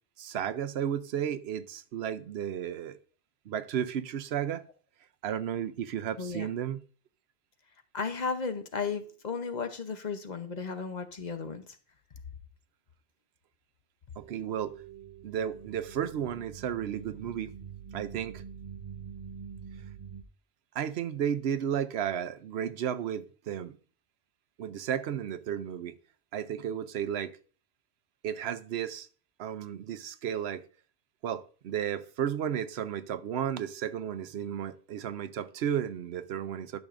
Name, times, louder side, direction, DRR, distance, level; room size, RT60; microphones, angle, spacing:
voice 1, 0.2-3.0 3.5-4.6 5.2-6.8 14.2-14.8 15.2-17.5 17.9-18.4 20.7-23.7 24.6-25.9 26.3-27.4 28.2-29.1 29.4-30.6 31.2-36.8, right 9 dB, 85° right, 0.9 m, -33 dB
voice 2, 6.2-6.5 7.9-11.8, left 5 dB, 45° left, 0.9 m, -34 dB
sound 1, 14.2-20.2, right 7 dB, 40° right, 0.6 m, -46 dB
12.0 x 6.3 x 2.5 m
omnidirectional pair, 1.0 m